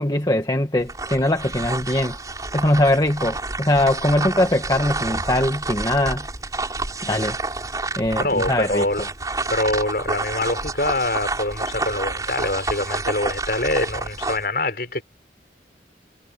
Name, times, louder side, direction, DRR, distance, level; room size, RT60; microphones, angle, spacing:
voice 1, 0.0-2.2 2.5-6.2 7.0-7.4 8.0-9.1, left 1 dB, 20° left, 1.6 m, -21 dB
sound 1, 0.8-14.5, right 3 dB, 20° right, 5.5 m, -29 dB
voice 2, 8.2-9.0 9.5-15.0, left 2 dB, 55° left, 6.0 m, -24 dB
head